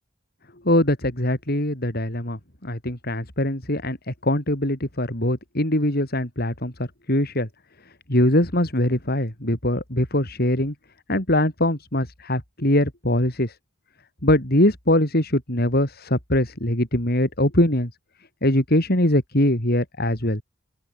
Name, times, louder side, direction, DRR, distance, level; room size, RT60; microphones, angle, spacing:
voice 1, 0.7-6.7 7.1-7.5 8.1-10.7 11.1-13.5 14.2-17.9 18.4-20.4, left 1 dB, 50° left, 5.9 m, -22 dB
open air
head